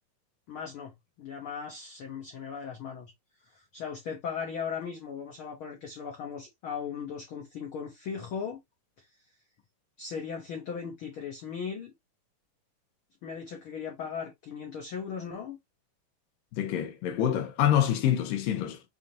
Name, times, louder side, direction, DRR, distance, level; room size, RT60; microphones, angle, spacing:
voice 1, 0.5-0.9 1.2-3.1 3.4-8.6 9.0-9.1 10.0-11.9 13.2-15.6, left 6 dB, 70° left, 1.2 m, -38 dB
voice 2, 16.6-18.8, left 10 dB, 90° left, 2.6 m, -26 dB
7.0 x 2.5 x 2.9 m
omnidirectional pair, 3.9 m